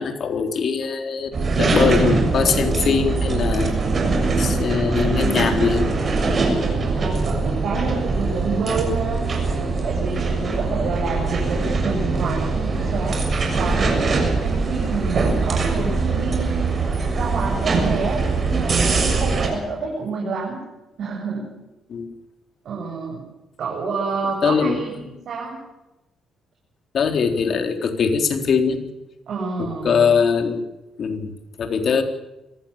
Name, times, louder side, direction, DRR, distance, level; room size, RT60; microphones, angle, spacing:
voice 1, 0.0-3.8 4.4-5.9 21.9-22.1 24.4-25.0 26.9-28.8 29.6-30.6 31.0-31.3 31.6-32.0, left 6 dB, 55° left, 6 dB, 3.9 m, -21 dB
sound 1, 1.3-19.5, right 3 dB, 40° right, 6.9 m, -22 dB
voice 2, 7.0-9.3 9.6-16.8 17.1-18.2 18.5-20.6 21.0-21.5 22.6-23.3 23.6-24.9 25.3-25.6 29.3-30.1, right 4 dB, 65° right, -2 dB, 7.8 m, -28 dB
25.5 x 16.0 x 7.4 m, 0.96 s
cardioid pair, 90°, 0 cm